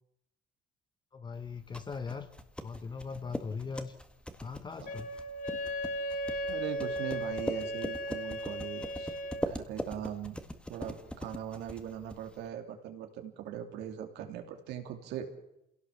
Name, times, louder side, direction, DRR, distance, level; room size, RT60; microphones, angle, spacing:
voice 1, 1.1-2.3 2.6-3.9 4.4-5.1, left 5 dB, 25° left, 10 dB, 1.1 m, -40 dB
sound 1, 1.4-12.5, left 1 dB, 5° left, 1.8 m, -41 dB
Wind instrument woodwind instrument, 4.8-9.5, equal, 55° left, 2.0 m, -36 dB
voice 2, 6.5-9.1 9.5-10.4 10.7-15.3, right 9 dB, 85° right, 5 dB, 2.9 m, -40 dB
26.5 x 17.0 x 7.3 m, 0.81 s
cardioid pair, 110°, 17 cm